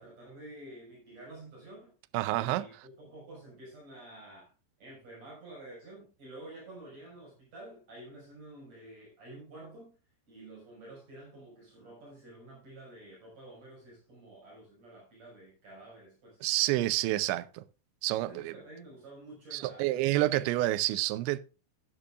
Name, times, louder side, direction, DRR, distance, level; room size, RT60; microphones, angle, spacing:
voice 1, 0.0-1.9 2.3-4.5 4.8-9.9 10.3-16.4 18.3-20.2, right 1 dB, 40° right, 6.4 m, -50 dB
voice 2, 2.1-2.7 16.4-17.6 18.0-18.5 19.5-21.4, right 16 dB, 90° right, 3.0 m, -28 dB
13.5 x 10.0 x 2.4 m
omnidirectional pair, 5.1 m